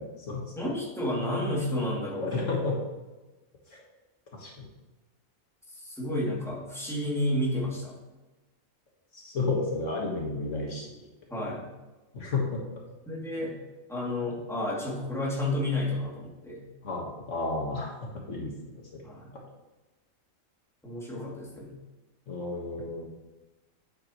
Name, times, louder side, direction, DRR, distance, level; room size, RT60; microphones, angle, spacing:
voice 1, 0.0-0.4 2.2-2.8 3.7-3.8 4.3-4.7 9.1-10.9 12.1-12.6 16.8-17.9 18.3-18.5 18.9-19.0 22.3-23.0, left 3 dB, 65° left, -2 dB, 1.8 m, -31 dB
voice 2, 0.6-2.5 5.7-7.9 11.3-11.7 13.1-13.6 13.9-16.6 19.0-19.3 20.8-21.7, left 1 dB, ahead, -6 dB, 2.5 m, -31 dB
9.1 x 8.2 x 3.0 m, 1.1 s
omnidirectional pair, 1.4 m